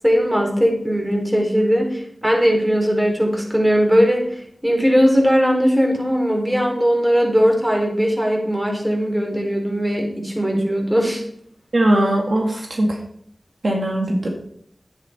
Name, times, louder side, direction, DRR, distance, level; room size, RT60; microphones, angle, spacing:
voice 1, 0.0-4.3 4.6-11.2, equal, 10° right, 1 dB, 4.1 m, -19 dB
voice 2, 11.7-13.0 13.6-14.3, right 1 dB, 70° right, 1 dB, 2.1 m, -19 dB
10.5 x 9.8 x 4.4 m, 0.65 s
cardioid pair, 40°, 0 cm